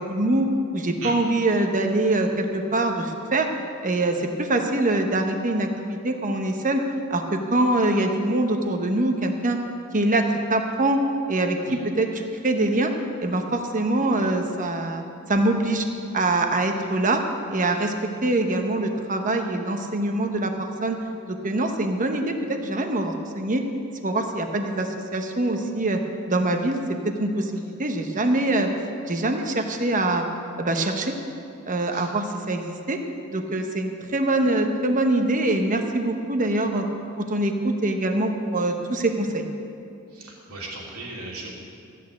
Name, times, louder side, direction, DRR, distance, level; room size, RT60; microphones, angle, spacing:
voice 1, 0.0-3.5 3.8-6.8 7.1-9.6 9.9-11.0 11.3-12.9 13.2-15.0 15.3-15.9 16.1-17.2 17.5-21.0 21.3-23.6 24.0-26.0 26.3-28.7 29.1-30.2 30.6-31.1 31.7-33.0 33.3-36.8 37.2-39.5, right 2 dB, 40° right, 4 dB, 1.1 m, -24 dB
voice 2, 40.1-41.6, right 3 dB, 80° right, -3 dB, 2.8 m, -37 dB
13.5 x 6.8 x 8.3 m, 2.6 s
head